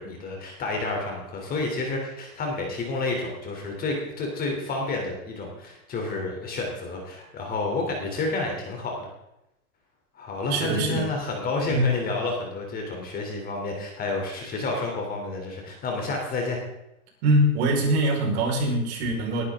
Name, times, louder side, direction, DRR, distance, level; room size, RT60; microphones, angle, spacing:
voice 1, 0.0-9.1 10.1-16.6, left 3 dB, 20° left, 1 dB, 3.2 m, -30 dB
voice 2, 10.5-11.1 11.7-11.9 17.2-19.4, right 1 dB, 45° right, 0 dB, 4.9 m, -23 dB
20.0 x 11.5 x 3.7 m, 0.87 s
hypercardioid pair, 145°, 43 cm